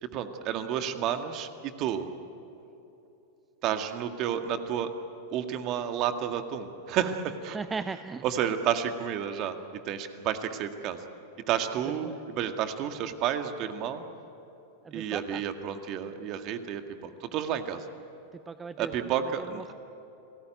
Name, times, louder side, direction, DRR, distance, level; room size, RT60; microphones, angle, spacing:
voice 1, 0.0-2.1 3.6-4.9 5.3-7.6 8.2-9.6 9.8-11.0 11.5-14.1 14.9-17.9 18.8-19.7, right 9 dB, 40° right, 7 dB, 1.9 m, -31 dB
voice 2, 7.5-8.2 12.0-12.2 14.8-15.4 18.3-18.9 19.4-19.7, right 4 dB, 15° right, 13 dB, 0.6 m, -37 dB
30.0 x 19.0 x 9.1 m, 3.0 s
figure-of-eight pair, 90°, 0 cm